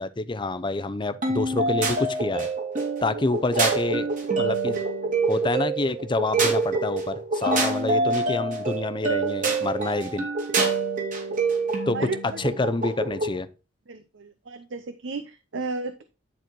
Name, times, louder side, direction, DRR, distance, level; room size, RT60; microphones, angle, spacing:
voice 1, 0.0-2.5 3.0-4.1 4.4-4.8 5.3-10.3 11.9-12.1 12.4-13.5, left 2 dB, 25° left, 0.6 m, -27 dB
sound 1, 1.2-13.4, right 3 dB, 45° right, 2.4 m, -26 dB
voice 2, 13.9-16.0, right 3 dB, 75° right, 0.7 m, -33 dB
10.5 x 4.4 x 4.5 m
head